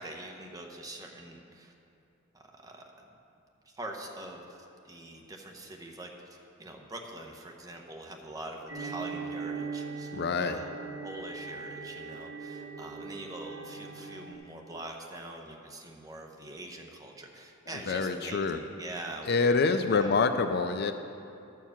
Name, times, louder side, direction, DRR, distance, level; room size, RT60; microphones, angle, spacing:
voice 1, 0.0-1.7 2.3-2.8 3.6-4.6 4.8-10.7 11.0-19.5 19.9-20.1, right 1 dB, 15° right, 1 dB, 0.9 m, -44 dB
sound 1, 8.7-14.3, right 4 dB, 70° right, 1.3 m, -40 dB
voice 2, 10.1-10.6 17.9-18.6 19.3-20.9, left 4 dB, 50° left, 8 dB, 0.4 m, -26 dB
12.5 x 4.6 x 7.2 m, 2.7 s
head